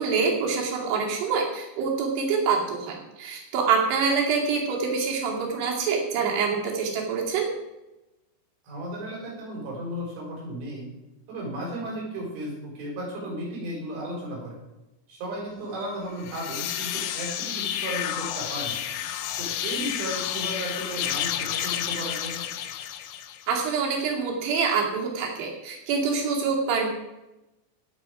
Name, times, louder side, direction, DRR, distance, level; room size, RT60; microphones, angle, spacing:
voice 1, 0.0-7.5 23.5-26.9, right 5 dB, 65° right, 0 dB, 4.4 m, -26 dB
voice 2, 8.7-10.9 11.3-14.6 15.1-18.8 19.4-22.4, right 1 dB, 80° right, -2 dB, 7.1 m, -34 dB
sound 1, 16.1-23.5, left 11 dB, 75° left, 3.0 m, -31 dB
18.0 x 7.5 x 4.9 m, 0.98 s
omnidirectional pair, 5.5 m